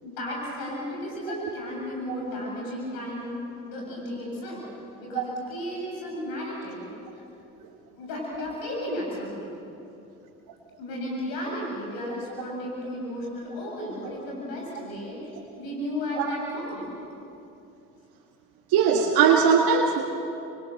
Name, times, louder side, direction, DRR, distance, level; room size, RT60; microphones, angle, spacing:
voice 1, 0.0-4.6 5.0-6.9 7.9-9.6 10.8-16.9, left 1 dB, 80° left, -2 dB, 7.6 m, -34 dB
voice 2, 18.7-20.0, right 6 dB, 75° right, -1 dB, 1.9 m, -20 dB
28.0 x 26.0 x 6.7 m, 2.8 s
hypercardioid pair, 50°, 36 cm